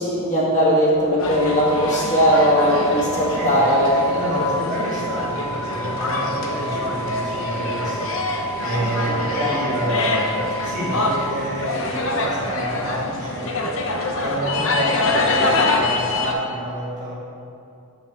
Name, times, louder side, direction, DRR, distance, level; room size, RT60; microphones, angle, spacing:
voice 1, 0.0-4.0 4.3-4.4 9.1-9.5, equal, 35° left, -6 dB, 1.6 m, -19 dB
sound 1, 1.2-16.3, left 2 dB, 70° left, 0.7 m, -25 dB
sound 2, 1.3-11.3, right 2 dB, 20° right, 1.2 m, -32 dB
voice 2, 3.2-3.7 4.0-17.1, right 1 dB, 35° right, -6 dB, 1.7 m, -28 dB
7.5 x 7.2 x 3.3 m, 2.6 s
head